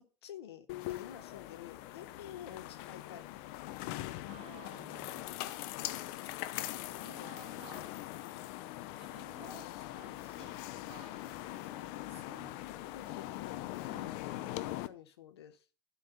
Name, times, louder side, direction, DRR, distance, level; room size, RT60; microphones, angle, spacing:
voice 1, 0.2-3.6 11.2-11.3 12.9-13.6 14.6-15.6, left 10 dB, 90° left, 11 dB, 0.9 m, -50 dB
sound 1, 0.7-14.9, left 15 dB, 65° left, 0.6 m, -42 dB
voice 2, 4.3-5.3 6.8-7.9 8.9-13.2 13.9-14.6, right 8 dB, 50° right, 9 dB, 1.3 m, -56 dB
11.5 x 4.1 x 5.2 m, 0.36 s
hypercardioid pair, 85°, 13 cm